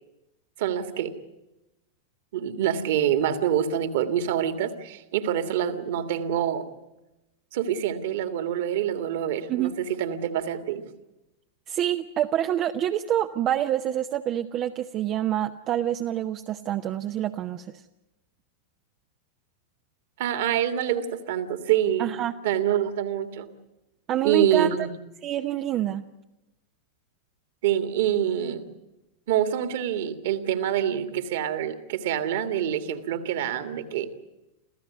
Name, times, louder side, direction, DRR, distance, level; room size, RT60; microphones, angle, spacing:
voice 1, 0.6-1.1 2.3-6.7 7.5-10.8 20.2-22.1 22.4-23.5 24.2-24.9 27.6-28.7 29.3-34.1, right 10 dB, 55° right, 9 dB, 1.9 m, -26 dB
voice 2, 11.7-17.7 22.0-22.3 24.1-24.7 25.2-26.0, right 11 dB, 35° right, 6 dB, 0.8 m, -27 dB
27.5 x 15.0 x 9.5 m, 0.99 s
figure-of-eight pair, 90°, 0 cm